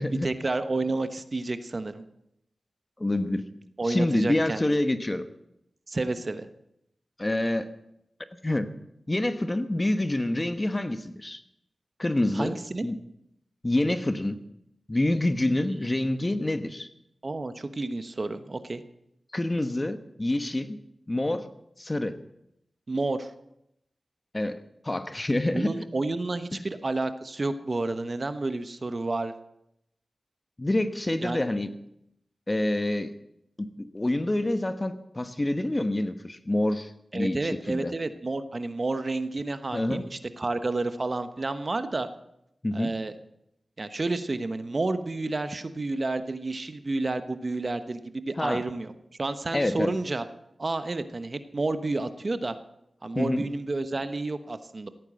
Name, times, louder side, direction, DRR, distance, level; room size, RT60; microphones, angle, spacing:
voice 1, 0.1-2.0 3.8-4.6 5.9-6.5 12.3-12.9 15.8-15.9 17.2-18.8 22.9-23.3 25.5-29.3 31.2-31.4 37.1-42.1 42.7-43.1 43.8-48.9 49.2-50.2 50.6-52.6 53.0-54.9, right 2 dB, 50° right, 10 dB, 1.1 m, -30 dB
voice 2, 3.0-3.5 3.8-5.3 7.2-7.7 8.4-8.7 9.1-11.4 12.0-13.0 13.6-14.4 14.9-16.9 19.3-20.8 21.1-21.5 21.8-22.2 24.3-24.6 24.8-25.7 26.5-26.6 30.6-31.7 32.5-33.1 33.6-37.9 39.7-40.0 42.6-42.9 48.4-48.6 49.5-49.9 53.1-53.4, left 1 dB, 30° left, 10 dB, 1.2 m, -27 dB
16.5 x 9.3 x 7.6 m, 0.79 s
cardioid pair, 45°, 0 cm